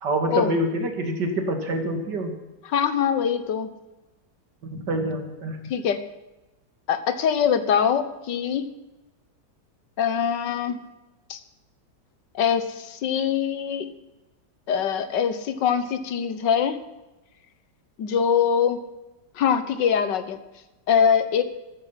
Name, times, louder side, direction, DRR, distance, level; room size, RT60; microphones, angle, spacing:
voice 1, 0.0-2.3 4.7-5.6, right 1 dB, 75° right, 5 dB, 2.8 m, -26 dB
voice 2, 2.7-3.7 5.7-6.0 6.9-8.7 10.0-10.8 11.3-11.4 12.3-13.9 14.7-16.8 18.0-18.8 19.4-20.4 20.9-21.4, left 7 dB, 80° left, 12 dB, 1.7 m, -23 dB
14.5 x 14.0 x 5.8 m, 1.0 s
omnidirectional pair, 1.9 m